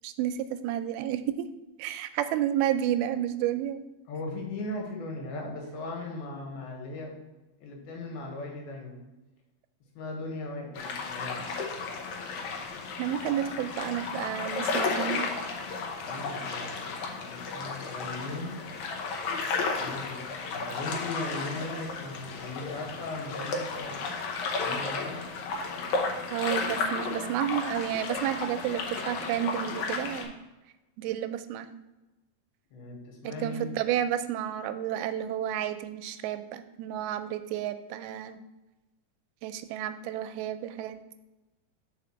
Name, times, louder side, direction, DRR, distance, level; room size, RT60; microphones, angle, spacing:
voice 1, 0.0-1.5 1.8-3.8 13.0-15.3 26.3-30.3 31.0-31.7 33.2-38.4 39.4-41.0, right 11 dB, 90° right, 10 dB, 2.4 m, -31 dB
voice 2, 4.1-7.1 7.6-9.0 9.9-11.5 16.0-18.6 19.7-25.2 32.7-33.7, left 2 dB, 90° left, 0 dB, 3.2 m, -38 dB
sound 1, 10.7-30.2, left 4 dB, 70° left, 1.8 m, -33 dB
5.1 x 4.7 x 6.0 m, 1.1 s
omnidirectional pair, 4.3 m